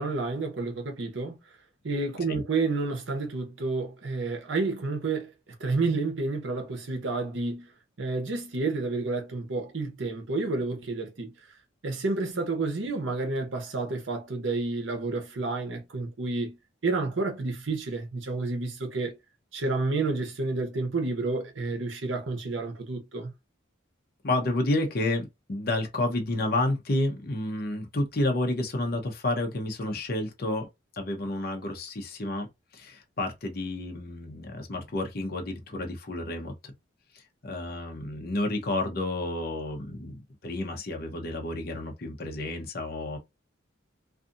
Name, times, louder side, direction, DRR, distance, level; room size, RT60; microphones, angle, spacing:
voice 1, 0.0-1.4 1.8-5.3 5.6-7.7 8.0-11.3 11.8-16.5 16.8-19.1 19.5-23.3, right 3 dB, 75° right, 0.8 m, -30 dB
voice 2, 24.2-30.7 30.9-32.5 32.7-36.7 37.1-43.2, left 2 dB, 50° left, 0.6 m, -30 dB
2.6 x 2.4 x 2.5 m
head